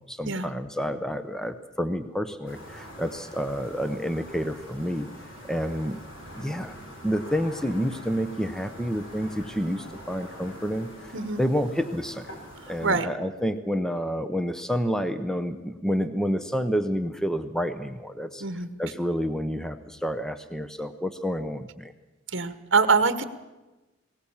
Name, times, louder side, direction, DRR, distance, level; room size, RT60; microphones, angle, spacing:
voice 1, 0.1-5.1 5.5-6.0 6.3-6.8 7.0-12.3 12.7-18.4 18.8-21.9, equal, 5° left, 11 dB, 0.8 m, -29 dB
sound 1, 2.5-13.0, equal, 70° left, 4.4 m, -44 dB
voice 2, 11.1-11.4 12.6-13.1 18.4-18.7 22.3-23.3, right 4 dB, 65° right, 12 dB, 1.3 m, -24 dB
20.0 x 18.5 x 7.2 m, 1.1 s
head